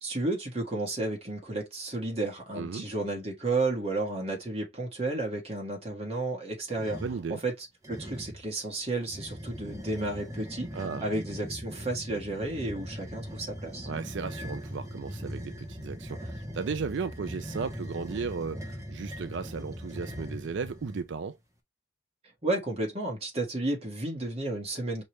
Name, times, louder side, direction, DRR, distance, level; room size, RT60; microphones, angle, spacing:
voice 1, 0.0-7.0 7.4-7.5 7.9-10.7 11.0-13.9 22.4-25.0, right 2 dB, 30° right, 1.8 m, -32 dB
voice 2, 2.5-2.9 7.0-7.4 10.7-11.1 13.9-21.4, right 5 dB, 75° right, 0.4 m, -35 dB
sound 1, 6.7-7.2 7.8-8.5 9.1-21.1, equal, 15° right, 1.1 m, -40 dB
5.3 x 3.2 x 3.1 m
head